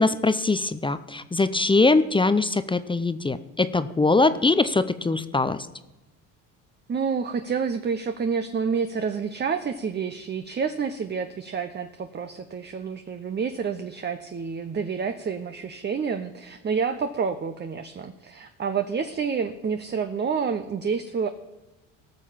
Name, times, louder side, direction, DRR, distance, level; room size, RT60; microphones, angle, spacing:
voice 1, 0.0-5.6, left 3 dB, 15° left, 13 dB, 0.6 m, -22 dB
voice 2, 6.9-21.3, right 6 dB, 30° right, 9 dB, 0.8 m, -28 dB
18.0 x 6.5 x 5.8 m, 1.0 s
supercardioid pair, 75°, 37 cm